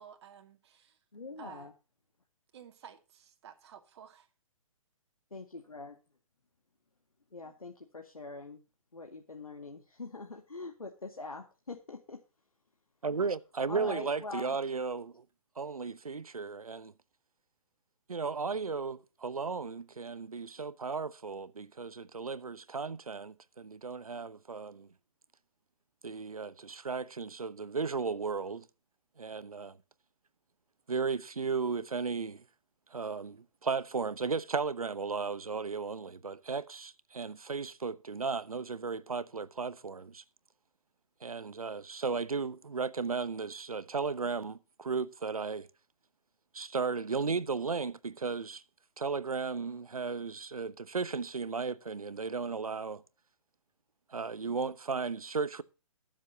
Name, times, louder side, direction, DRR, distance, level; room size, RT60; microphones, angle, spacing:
voice 1, 0.0-1.0 1.4-1.7 2.5-4.3, right 8 dB, 50° right, 2.3 m, -52 dB
voice 2, 1.1-1.7 5.3-6.0 7.3-8.6 8.9-12.2 13.7-14.6, left 3 dB, 90° left, 2.1 m, -43 dB
voice 3, 13.0-15.2 15.6-16.9 18.1-24.9 26.0-28.7 29.2-29.8 30.9-32.4 32.9-40.2 41.2-45.7 46.5-48.6 49.0-53.0 54.1-55.6, right 4 dB, 85° right, 1.0 m, -35 dB
22.5 x 7.5 x 2.8 m
figure-of-eight pair, 135°, 18 cm